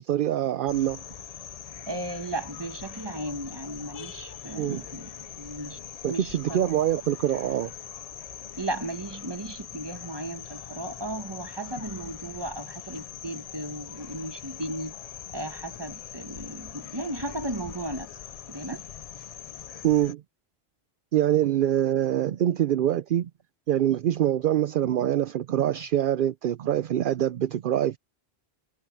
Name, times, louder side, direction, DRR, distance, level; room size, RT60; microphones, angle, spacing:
voice 1, 0.1-1.0 4.6-4.8 6.0-7.7 19.8-20.2 21.1-23.3 23.7-28.0, right 11 dB, 60° right, 0.7 m, -24 dB
sound 1, 0.7-20.1, left 8 dB, 50° left, 0.5 m, -42 dB
voice 2, 1.9-5.1 5.4-5.8 6.1-6.7 8.6-14.9 15.3-18.1 18.5-18.8, right 1 dB, 25° right, 1.7 m, -35 dB
omnidirectional pair, 1.1 m